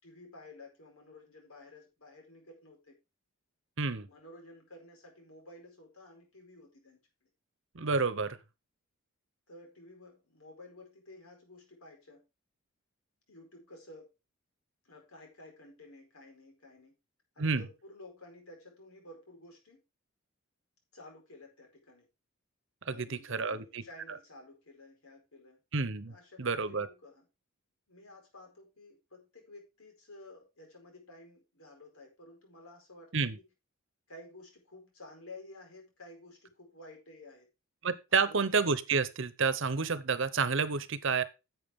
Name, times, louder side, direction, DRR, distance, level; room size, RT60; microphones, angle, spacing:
voice 1, 0.0-3.0 4.0-7.3 9.5-12.2 13.3-14.1 14.8-16.9 17.3-19.8 20.9-22.1 22.9-25.6 26.1-27.3 27.9-33.3 34.1-37.5 38.1-38.4, left 2 dB, 90° left, 4.7 m, -53 dB
voice 2, 7.7-8.4 17.4-17.7 22.9-23.8 25.7-26.9 33.1-33.4 37.8-41.2, right 4 dB, 60° right, 0.9 m, -30 dB
11.0 x 7.6 x 3.7 m
head